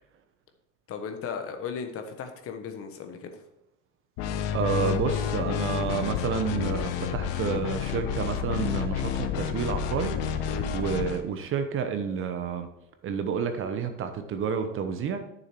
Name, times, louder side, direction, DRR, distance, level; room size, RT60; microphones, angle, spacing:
voice 1, 0.9-3.4 10.5-10.7, left 6 dB, 35° left, 7 dB, 1.3 m, -36 dB
sound 1, 4.2-11.2, left 8 dB, 60° left, 1.0 m, -30 dB
voice 2, 4.5-12.7 13.0-15.2, right 6 dB, 35° right, 8 dB, 1.0 m, -30 dB
9.4 x 7.0 x 4.5 m, 0.86 s
supercardioid pair, 120°, 38 cm